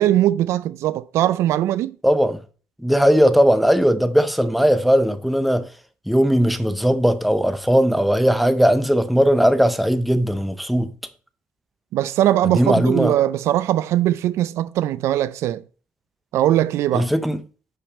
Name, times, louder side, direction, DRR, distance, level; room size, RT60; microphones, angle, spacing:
voice 1, 0.0-2.0 11.9-15.6 16.3-17.1, right 13 dB, 80° right, 0.3 m, -20 dB
voice 2, 2.0-2.4 2.8-5.7 6.1-10.9 12.4-13.1 16.9-17.4, equal, ahead, 0.6 m, -18 dB
5.8 x 5.1 x 4.1 m
cardioid pair, 105°, 5 cm